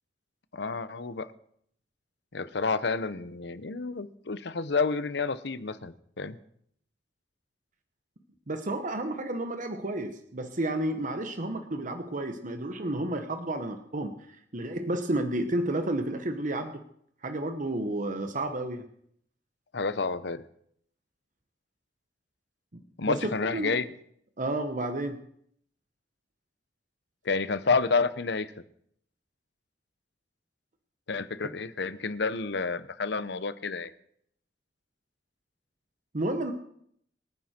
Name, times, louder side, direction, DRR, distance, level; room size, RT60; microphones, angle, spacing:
voice 1, 0.5-1.3 2.3-6.4 19.7-20.4 23.0-23.9 27.2-28.5 31.1-33.9, left 4 dB, 70° left, 14 dB, 0.9 m, -29 dB
voice 2, 8.5-16.7 17.2-18.8 23.1-23.2 23.5-23.8 24.4-25.2 36.1-36.5, right 1 dB, 45° right, 7 dB, 1.1 m, -31 dB
25.0 x 9.6 x 4.4 m, 0.68 s
head